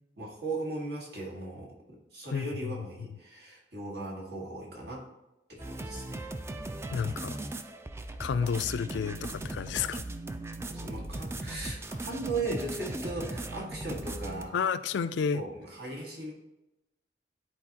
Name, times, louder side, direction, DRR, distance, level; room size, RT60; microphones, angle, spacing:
voice 1, 0.2-5.1 5.5-6.3 10.7-14.6 15.3-16.3, right 2 dB, 65° right, -2 dB, 1.8 m, -37 dB
voice 2, 2.3-2.7 6.9-7.4 8.2-10.0 14.5-15.4, left 6 dB, 85° left, 13 dB, 0.3 m, -31 dB
sound 1, 5.6-14.4, right 2 dB, 15° right, 0.3 m, -38 dB
10.5 x 4.1 x 2.9 m, 0.95 s
head